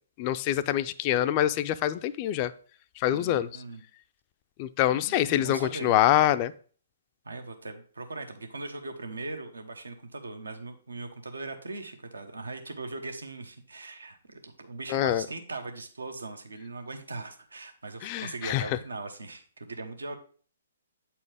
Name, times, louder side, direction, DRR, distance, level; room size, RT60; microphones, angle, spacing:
voice 1, 0.2-2.5 3.0-3.5 4.6-6.5 14.9-15.2 18.0-18.6, left 12 dB, 35° left, 13 dB, 0.3 m, -25 dB
voice 2, 3.1-3.8 4.8-6.0 7.2-20.2, right 3 dB, 85° right, 7 dB, 0.9 m, -40 dB
8.1 x 4.3 x 3.4 m, 0.43 s
hypercardioid pair, 135°, 0 cm